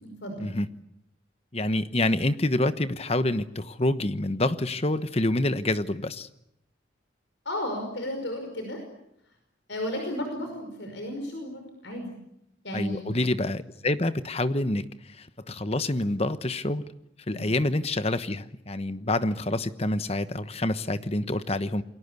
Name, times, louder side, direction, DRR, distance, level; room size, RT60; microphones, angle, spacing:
voice 1, 0.0-0.5 7.5-8.8 9.7-12.1 12.6-13.0 17.3-17.5, left 1 dB, 70° left, 4 dB, 5.5 m, -33 dB
voice 2, 1.5-6.3 12.7-16.8 17.3-21.8, left 1 dB, 30° left, 12 dB, 1.1 m, -27 dB
29.0 x 22.0 x 8.3 m, 0.81 s
head